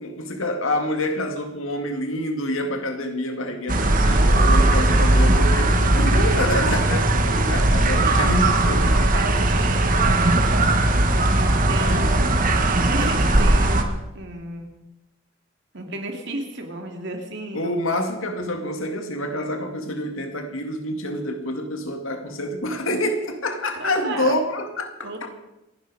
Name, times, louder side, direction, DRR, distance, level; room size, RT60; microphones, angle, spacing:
voice 1, 0.0-9.2 11.8-12.4 17.5-25.3, left 1 dB, 75° left, 2.2 m, -27 dB
sound 1, 3.7-13.8, right 1 dB, 40° right, 1.4 m, -18 dB
voice 2, 8.0-14.7 15.7-18.0 23.8-24.4 25.0-25.3, right 1 dB, 55° right, 2.9 m, -33 dB
27.5 x 10.5 x 4.9 m
head